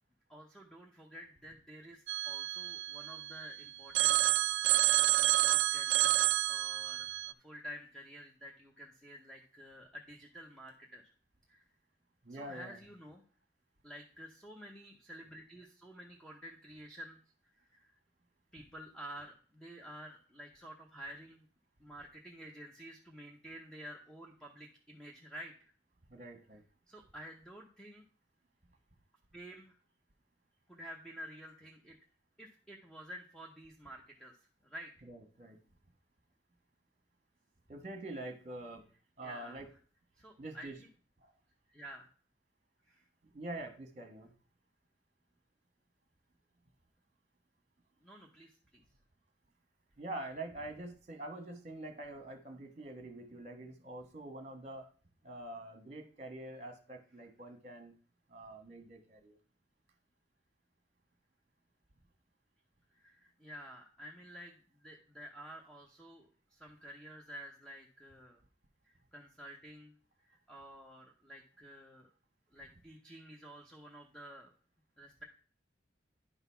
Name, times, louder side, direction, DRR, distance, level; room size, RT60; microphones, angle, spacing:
voice 1, 0.3-4.6 4.9-11.1 11.5-11.7 12.3-13.2 13.8-17.2 17.6-17.9 18.5-21.5 21.8-25.7 26.9-28.0 29.3-29.8 30.7-32.0 32.4-34.3 34.6-34.9 39.2-39.6 40.2-40.7 41.7-42.1 42.9-43.0 48.0-48.8 62.9-68.4 68.8-69.9 70.2-72.1 72.5-74.5 75.0-75.2, equal, 5° left, 1 dB, 0.7 m, -51 dB
Telephone, 2.1-3.5 3.9-7.3, right 15 dB, 80° right, 0.4 m, -29 dB
voice 2, 12.2-12.8 26.1-26.6 35.0-35.6 37.7-38.8 39.2-39.7 40.4-40.7 41.2-41.3 43.2-44.3 50.0-54.9 55.2-57.9 58.3-59.4, right 1 dB, 35° right, 7 dB, 1.3 m, -45 dB
10.0 x 4.0 x 5.6 m, 0.41 s
head